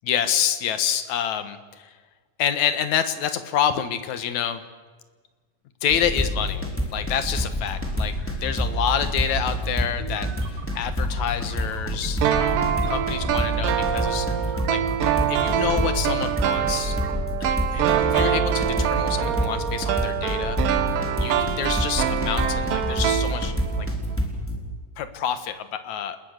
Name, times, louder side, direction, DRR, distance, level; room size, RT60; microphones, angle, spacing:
voice 1, 0.0-1.9 2.4-4.6 5.8-8.1 8.4-14.8 15.1-17.0 17.4-20.6 21.2-23.9 25.0-26.2, left 9 dB, 65° left, 10 dB, 2.7 m, -28 dB
sound 1, 5.9-24.6, equal, 5° left, 3.7 m, -27 dB
sound 2, 10.0-17.1, right 6 dB, 55° right, 2.5 m, -39 dB
sound 3, 12.2-23.9 24.1-24.2, right 10 dB, 85° right, 2.9 m, -25 dB
29.5 x 21.0 x 6.7 m, 1.4 s
omnidirectional pair, 3.7 m